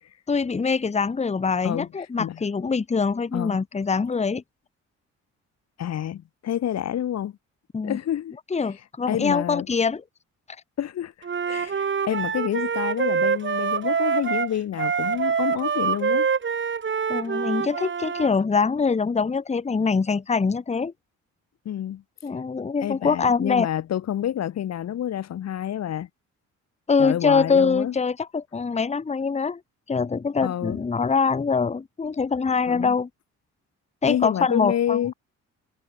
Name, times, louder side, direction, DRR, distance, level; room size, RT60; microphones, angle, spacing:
voice 1, 0.3-4.4 7.7-8.0 8.5-10.0 17.1-20.9 22.2-23.7 26.9-29.6 29.9-33.1 34.0-35.0, left 5 dB, 20° left, 1.1 m, -24 dB
voice 2, 5.8-7.4 7.8-8.3 8.6-8.7 9.1-9.7 10.8-16.3 21.6-22.0 22.8-26.1 27.0-27.9 30.4-30.8 32.7-33.0 34.1-35.1, left 10 dB, 60° left, 1.3 m, -28 dB
Wind instrument woodwind instrument, 11.2-18.3, right 6 dB, 40° right, 3.1 m, -25 dB
cardioid pair, 90°, 30 cm